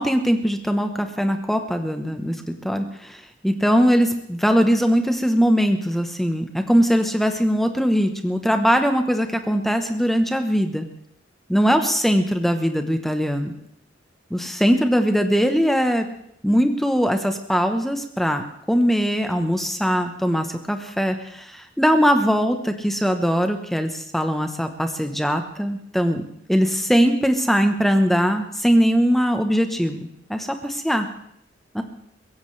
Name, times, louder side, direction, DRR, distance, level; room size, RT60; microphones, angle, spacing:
voice 1, 0.0-2.3 2.6-10.9 11.5-13.5 14.3-16.1 16.4-26.2 26.5-31.1 31.7-31.8, equal, ahead, 6 dB, 1.0 m, -21 dB
23.0 x 16.5 x 3.3 m, 0.71 s
head